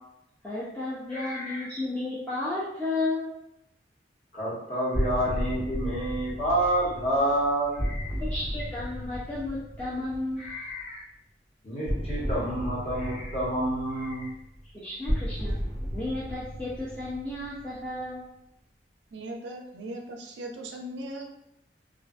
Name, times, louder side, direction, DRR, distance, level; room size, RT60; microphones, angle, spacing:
voice 1, 0.4-3.3 8.1-10.5 14.7-15.6 15.9-18.3, left 2 dB, 5° left, -10 dB, 0.5 m, -33 dB
voice 2, 1.1-1.6 4.3-8.1 10.4-11.0 11.6-14.3, right 1 dB, 35° left, -10 dB, 1.3 m, -29 dB
sound 1, 4.9-10.7 11.9-18.1, equal, 60° left, 1.2 m, -34 dB
voice 3, 19.1-21.2, right 1 dB, 75° right, 2 dB, 0.4 m, -38 dB
2.4 x 2.4 x 2.3 m, 0.82 s
head